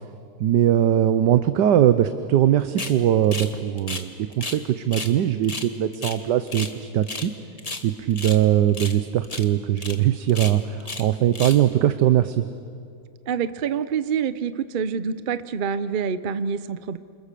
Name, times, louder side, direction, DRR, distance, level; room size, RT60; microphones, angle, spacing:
voice 1, 0.4-7.3 7.8-12.5, right 11 dB, 75° right, 10 dB, 1.4 m, -21 dB
sound 1, 2.8-3.0 3.3-3.5 3.8-4.6 4.9-5.1 5.4-6.8 7.0-7.3 7.6-8.4 8.7-9.0 9.2-9.5 9.8-10.0 10.3-11.1 11.3-11.7, left 3 dB, 25° left, 1.3 m, -33 dB
voice 2, 13.3-17.0, right 7 dB, 50° right, 13 dB, 0.6 m, -26 dB
28.5 x 26.5 x 6.8 m, 2.3 s
omnidirectional pair, 1.9 m